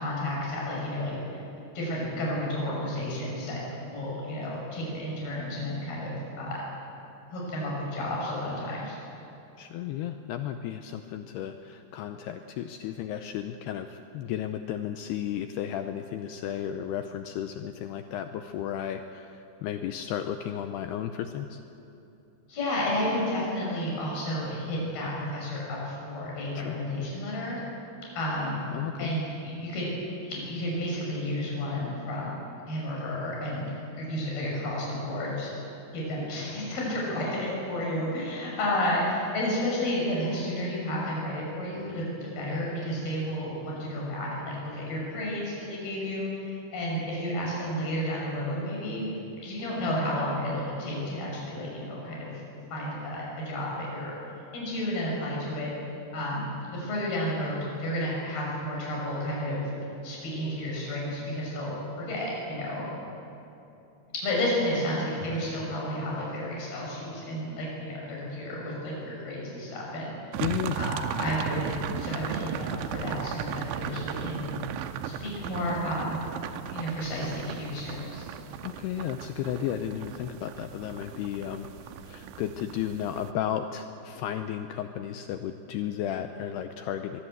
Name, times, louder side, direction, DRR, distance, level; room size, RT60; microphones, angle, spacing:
voice 1, 0.0-1.4 1.7-6.6 7.3-9.0 22.5-27.6 28.2-28.6 29.0-29.9 30.2-32.4 32.7-35.5 35.9-49.0 49.4-52.3 52.7-54.1 54.5-55.7 56.1-56.5 56.7-59.7 60.0-62.9 64.2-70.2 70.8-71.7 72.0-74.5 75.0-76.2 76.7-78.2, left 1 dB, 50° left, -4 dB, 8.0 m, -31 dB
voice 2, 9.6-21.6 26.6-26.8 28.7-29.1 70.4-70.8 78.6-81.7 82.0-87.2, left 10 dB, 90° left, 7 dB, 2.3 m, -33 dB
sound 1, 70.3-83.3, right 9 dB, 80° right, 3.1 m, -36 dB
23.0 x 22.5 x 7.9 m, 2.8 s
omnidirectional pair, 5.5 m